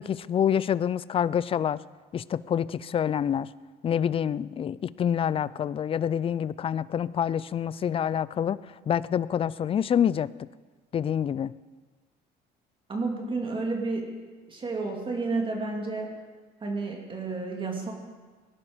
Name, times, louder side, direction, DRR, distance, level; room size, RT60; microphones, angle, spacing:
voice 1, 0.0-1.8 2.1-3.5 3.8-8.6 8.9-10.3 10.9-11.5, left 9 dB, 35° left, 19 dB, 0.4 m, -27 dB
voice 2, 12.9-14.1 14.5-16.1 16.6-17.9, right 3 dB, 30° right, 1 dB, 2.3 m, -31 dB
18.0 x 11.0 x 5.1 m, 1.4 s
cardioid pair, 110°, 17 cm